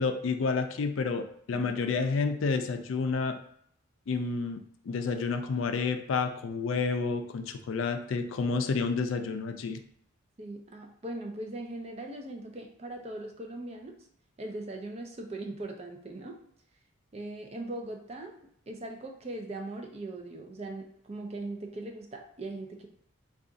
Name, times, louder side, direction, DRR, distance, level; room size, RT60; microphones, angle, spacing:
voice 1, 0.0-3.4 4.1-4.6 4.9-9.8, left 4 dB, 70° left, 7 dB, 0.4 m, -30 dB
voice 2, 10.4-13.9 14.4-16.3 17.1-18.4 18.7-22.9, right 2 dB, 30° right, 3 dB, 0.4 m, -40 dB
2.5 x 2.3 x 3.8 m, 0.65 s
head